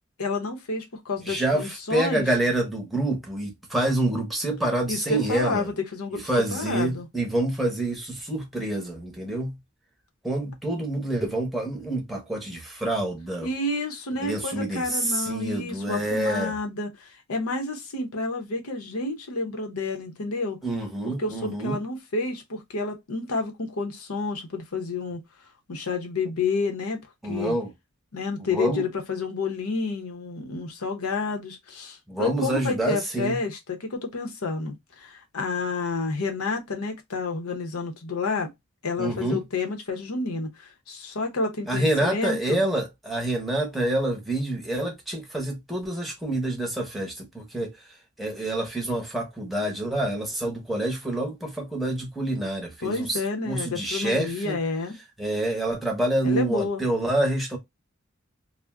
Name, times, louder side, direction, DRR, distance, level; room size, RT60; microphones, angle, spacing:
voice 1, 0.2-2.3 4.9-7.1 13.4-20.6 21.2-25.2 25.7-27.0 27.2-27.6 28.1-38.5 38.8-42.6 52.8-55.0 56.2-56.8, left 3 dB, 85° left, 0.8 m, -30 dB
voice 2, 1.3-5.7 6.3-9.6 10.2-13.5 14.2-16.5 20.6-21.8 27.2-27.7 28.5-28.8 32.1-33.4 39.0-39.4 41.7-47.7 48.2-53.2 53.5-54.6 55.2-57.6, right 1 dB, ahead, 0.7 m, -27 dB
2.4 x 2.1 x 3.4 m
head